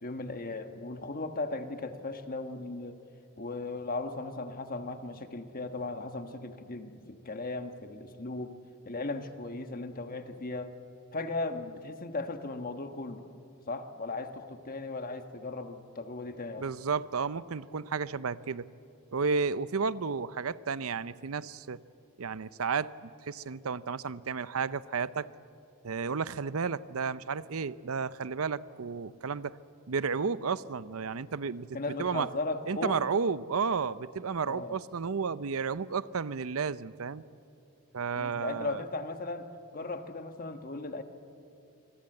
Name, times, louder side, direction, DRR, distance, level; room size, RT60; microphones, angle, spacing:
voice 1, 0.0-3.0 3.4-8.6 8.8-10.7 11.1-13.2 13.7-16.7 31.7-33.0 34.5-34.8 38.1-39.5 39.7-41.0, left 3 dB, 45° left, 7 dB, 1.3 m, -37 dB
voice 2, 16.6-18.7 19.1-21.8 22.2-22.9 23.2-25.3 25.8-29.6 29.9-32.3 32.7-37.2 37.9-38.8, right 5 dB, 85° right, 16 dB, 0.6 m, -32 dB
26.0 x 21.5 x 7.9 m, 2.6 s
head